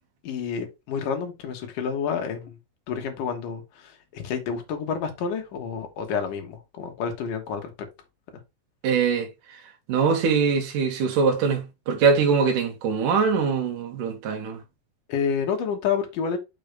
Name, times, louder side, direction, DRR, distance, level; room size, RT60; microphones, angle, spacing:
voice 1, 0.2-2.6 2.9-7.9 15.1-16.4, left 6 dB, 65° left, 2.1 m, -29 dB
voice 2, 8.8-9.6 9.9-14.6, right 5 dB, 60° right, 2.3 m, -23 dB
6.7 x 5.5 x 3.3 m
omnidirectional pair, 5.7 m